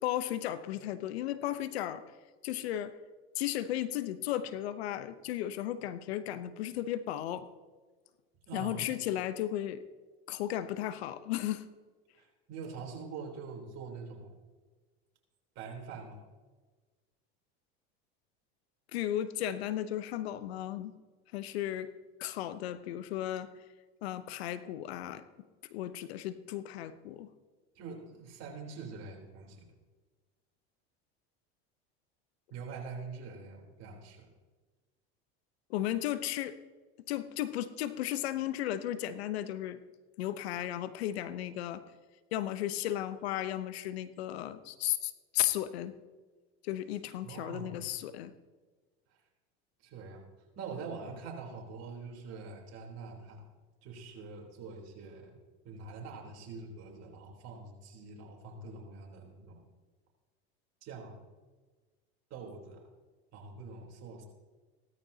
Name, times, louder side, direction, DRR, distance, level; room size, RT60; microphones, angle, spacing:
voice 1, 0.0-2.0 2.4-2.9 3.4-7.5 8.5-9.8 10.3-11.6 18.9-20.9 21.3-21.9 22.2-23.5 24.0-25.2 25.7-27.3 35.7-36.6 37.1-39.8 40.2-41.8 42.3-46.0 46.6-48.3, left 12 dB, 80° left, 14 dB, 0.9 m, -35 dB
voice 2, 8.5-8.9 12.2-14.3 15.6-16.2 27.8-29.7 32.5-34.3 47.2-47.8 49.8-50.2 50.6-53.4 53.8-55.4 55.6-59.6 60.8-61.2 62.3-62.8 63.3-64.2, right 4 dB, 55° right, 0 dB, 3.6 m, -44 dB
16.5 x 13.5 x 2.8 m, 1.3 s
hypercardioid pair, 90°, 31 cm